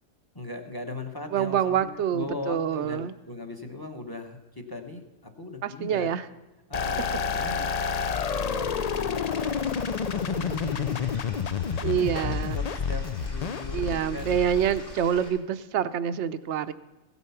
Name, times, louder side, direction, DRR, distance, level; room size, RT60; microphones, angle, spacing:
voice 1, 0.3-6.1 6.7-9.7 10.1-11.4 11.7-14.4, left 2 dB, 20° left, 4 dB, 0.9 m, -39 dB
voice 2, 1.3-3.1 5.6-6.2 11.8-12.6 13.7-16.7, right 9 dB, 65° right, 12 dB, 0.8 m, -26 dB
sound 1, 6.7-15.2, left 6 dB, 80° left, 0.3 m, -29 dB
Stream / Liquid, 9.3-15.3, left 1 dB, 55° left, 3.9 m, -46 dB
16.0 x 8.3 x 5.7 m, 1.1 s
omnidirectional pair, 1.4 m